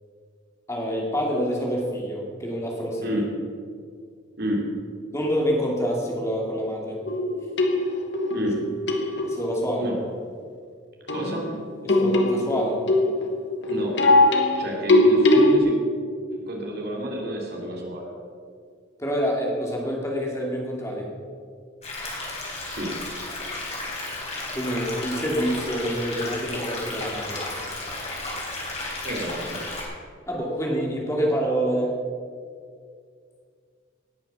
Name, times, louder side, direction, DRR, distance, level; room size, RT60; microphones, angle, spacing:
voice 1, 0.7-3.2 5.1-7.0 9.2-9.9 11.8-12.8 19.0-21.1 24.5-27.5 30.3-32.0, equal, 15° left, -2 dB, 2.5 m, -27 dB
sound 1, 7.1-9.6 11.1-15.6, left 1 dB, 65° left, 1.3 m, -21 dB
voice 2, 11.1-11.5 13.6-13.9 14.6-15.8 16.4-18.1 22.6-22.9 29.0-29.6, equal, 50° right, -1 dB, 2.9 m, -30 dB
sound 2, 21.8-29.8, left 2 dB, 35° left, 3.7 m, -33 dB
18.5 x 6.9 x 6.8 m, 2.2 s
head